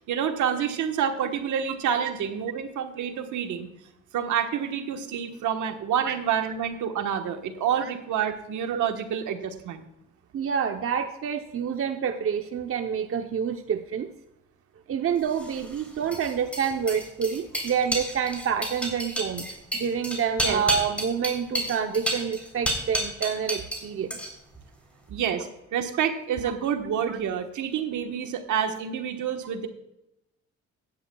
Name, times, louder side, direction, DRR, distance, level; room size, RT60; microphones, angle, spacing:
voice 1, 0.1-3.7 4.1-9.8 20.4-20.6 25.1-29.7, right 8 dB, 75° right, 6 dB, 1.4 m, -28 dB
voice 2, 10.3-14.1 14.9-19.5 19.7-24.2 27.1-27.2, right 7 dB, 50° right, 6 dB, 0.8 m, -28 dB
sound 1, 15.3-23.8 24.1-24.6, equal, 5° left, 3.5 m, -30 dB
15.5 x 10.5 x 2.3 m, 0.85 s
cardioid pair, 90°, 30 cm